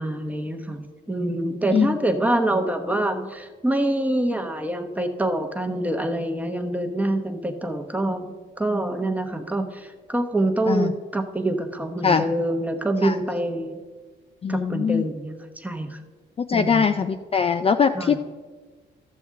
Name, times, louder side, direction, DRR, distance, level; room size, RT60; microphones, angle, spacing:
voice 1, 0.0-13.8 14.5-16.0 16.5-16.9 17.9-18.2, right 1 dB, 5° right, 5 dB, 1.0 m, -26 dB
voice 2, 14.4-15.0 16.4-18.2, left 6 dB, 30° left, 8 dB, 0.4 m, -21 dB
13.0 x 7.0 x 3.7 m, 1.4 s
cardioid pair, 90°, 20 cm